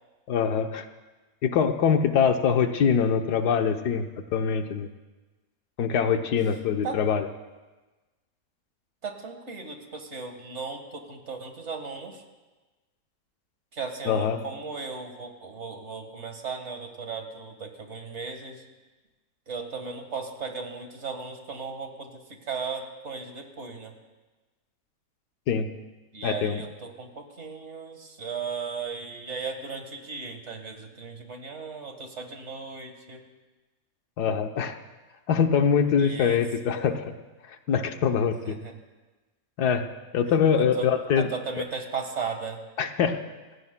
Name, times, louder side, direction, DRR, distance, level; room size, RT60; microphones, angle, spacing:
voice 1, 0.3-0.9 1.4-4.1 4.3-4.9 5.8-7.3 14.1-14.4 25.5-25.7 26.2-26.6 34.2-34.8 35.3-37.1 37.7-38.6 39.6-39.9 40.1-41.3 42.8-43.2, left 7 dB, 85° left, 7 dB, 1.4 m, -23 dB
voice 2, 9.0-12.2 13.7-18.6 19.5-23.9 26.1-33.2 36.0-36.4 38.4-38.8 40.2-42.6, right 5 dB, 50° right, 4 dB, 1.8 m, -36 dB
28.5 x 16.5 x 2.2 m, 1.2 s
omnidirectional pair, 1.6 m